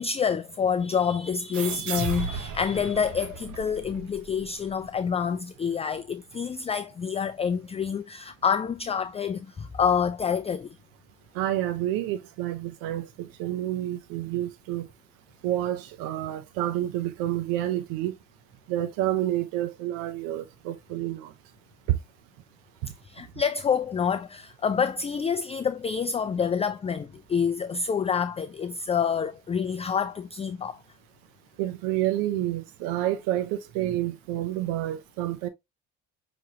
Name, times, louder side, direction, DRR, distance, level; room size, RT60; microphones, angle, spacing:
voice 1, 0.0-10.8 23.0-30.8, left 6 dB, 20° left, 0.3 m, -27 dB
sound 1, 1.5-4.7, right 5 dB, 60° right, 1.1 m, -35 dB
voice 2, 11.3-14.9 15.4-18.1 18.7-21.3 21.9-22.0 31.6-35.5, right 13 dB, 85° right, 0.6 m, -29 dB
5.9 x 3.1 x 2.7 m
supercardioid pair, 75°, 33 cm